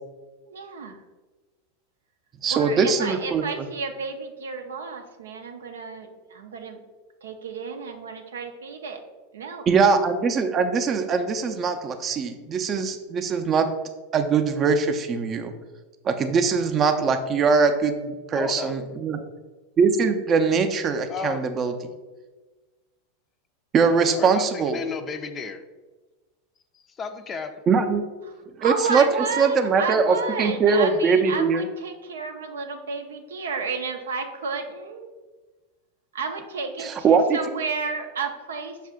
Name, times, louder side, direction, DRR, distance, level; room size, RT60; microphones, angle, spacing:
voice 1, 0.5-1.0 2.5-6.8 7.2-9.0 9.3-9.6 28.3-28.4 28.6-35.1 36.1-38.9, right 5 dB, 85° right, 5 dB, 0.5 m, -32 dB
voice 2, 2.4-3.4 9.7-13.7 14.1-15.5 16.0-19.2 19.8-21.7 23.7-24.8 27.7-28.0 28.6-29.0 29.4-31.7 36.8-37.4, right 5 dB, 35° right, 7 dB, 0.5 m, -21 dB
voice 3, 18.3-18.7 21.1-21.5 24.1-25.6 26.7-27.5, left 4 dB, 30° left, 9 dB, 0.4 m, -33 dB
5.5 x 2.4 x 3.6 m, 1.2 s
hypercardioid pair, 95°, 0 cm